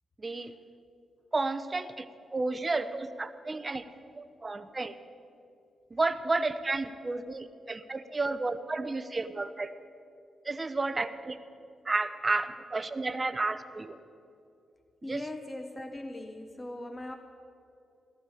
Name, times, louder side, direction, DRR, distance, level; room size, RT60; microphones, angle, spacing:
voice 1, 0.2-0.5 1.3-2.1 2.3-3.8 4.1-4.9 5.9-9.7 10.4-11.4 11.8-14.0 15.1-15.2, right 3 dB, 25° right, 11 dB, 0.7 m, -31 dB
voice 2, 15.0-17.2, left 1 dB, 20° left, 5 dB, 0.8 m, -40 dB
18.0 x 13.5 x 4.9 m, 2.6 s
cardioid pair, 105°, 0 cm